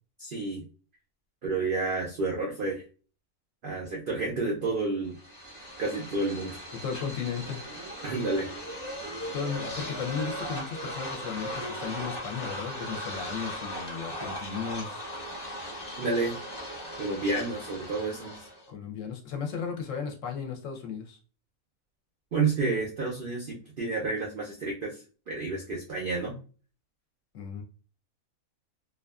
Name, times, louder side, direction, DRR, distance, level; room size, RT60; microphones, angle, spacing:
voice 1, 0.2-0.6 1.4-2.8 3.6-5.2 5.8-6.6 8.0-8.5 16.0-16.3 17.0-18.4 22.3-26.3, right 3 dB, 70° right, -2 dB, 0.5 m, -30 dB
sound 1, 5.1-18.7, equal, 20° left, 0.8 m, -38 dB
voice 2, 6.8-7.6 9.3-15.0 18.7-21.2 27.3-27.6, left 6 dB, 70° left, 2 dB, 0.9 m, -35 dB
2.4 x 2.4 x 2.3 m, 0.37 s
omnidirectional pair, 1.5 m